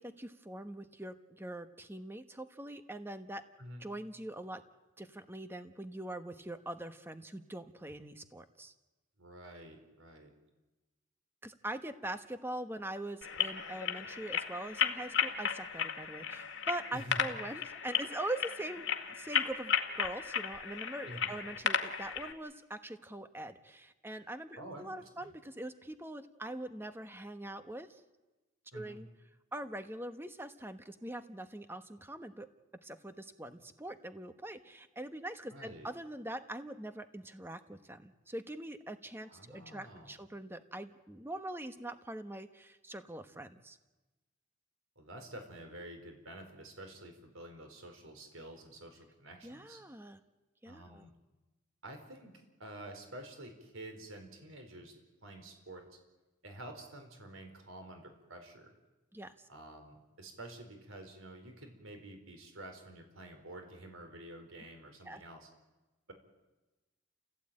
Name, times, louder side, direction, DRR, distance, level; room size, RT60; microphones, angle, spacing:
voice 1, 0.0-3.4 3.8-4.6 5.0-8.7 11.4-18.9 19.2-28.0 28.7-29.1 29.5-32.5 32.8-43.8 49.4-50.2 50.6-51.1 59.1-59.5 65.0-65.2, right 1 dB, 10° right, 9 dB, 1.2 m, -43 dB
voice 2, 9.2-10.3 16.9-17.2 21.1-21.3 24.6-24.9 25.2-25.3 28.7-29.0 35.5-35.9 39.2-40.2 45.0-49.8 50.6-51.1 51.8-52.3 52.6-54.9 55.2-56.0 56.4-58.7 59.5-65.5, right 1 dB, 85° right, 5 dB, 4.6 m, -49 dB
sound 1, 13.2-22.3, left 7 dB, 65° left, 1.9 m, -35 dB
29.5 x 16.0 x 8.9 m, 1.1 s
head